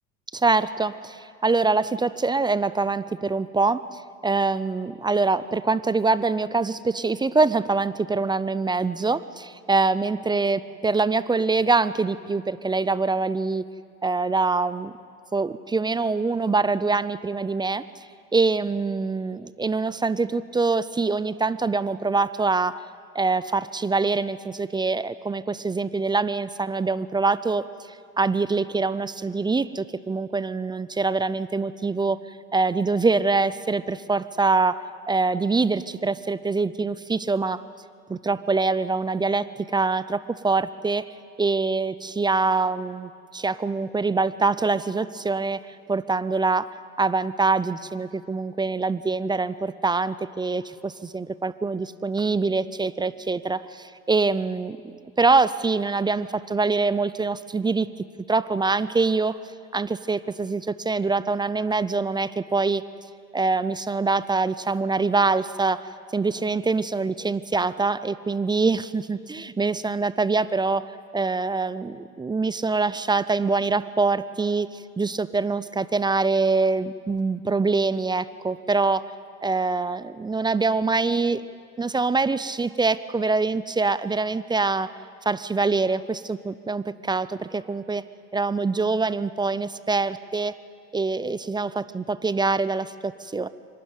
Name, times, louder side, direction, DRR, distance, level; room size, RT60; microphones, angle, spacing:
voice 1, 0.3-13.6 14.0-14.9 15.3-17.8 18.3-22.8 23.1-27.6 28.2-32.2 32.5-37.6 38.1-41.1 41.4-45.6 45.9-54.8 55.2-57.9 58.3-59.4 59.7-62.8 63.3-70.8 71.1-79.0 79.4-81.4 81.8-84.9 85.3-88.0 88.3-90.5 90.9-93.5, right 3 dB, 10° right, 16 dB, 0.4 m, -24 dB
25.0 x 12.0 x 9.5 m, 2.3 s
hypercardioid pair, 85°, 41 cm